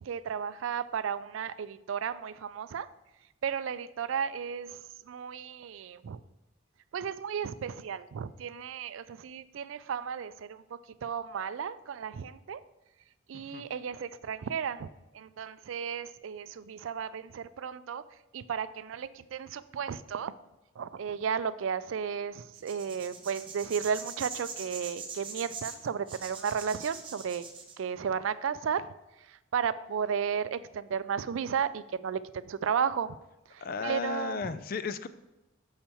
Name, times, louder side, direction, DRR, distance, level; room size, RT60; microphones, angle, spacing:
voice 1, 0.0-2.9 3.4-4.8 5.1-6.2 6.9-10.6 11.0-12.6 13.3-14.9 15.1-18.0 18.3-20.3 20.8-27.4 27.8-28.9 29.5-33.2 33.5-34.5, right 7 dB, 75° right, 15 dB, 0.4 m, -34 dB
voice 2, 13.3-13.6 33.6-35.1, left 5 dB, 45° left, 13 dB, 0.3 m, -35 dB
sound 1, 22.5-27.7, right 5 dB, 25° right, 0.9 m, -42 dB
7.0 x 5.7 x 4.4 m, 1.0 s
head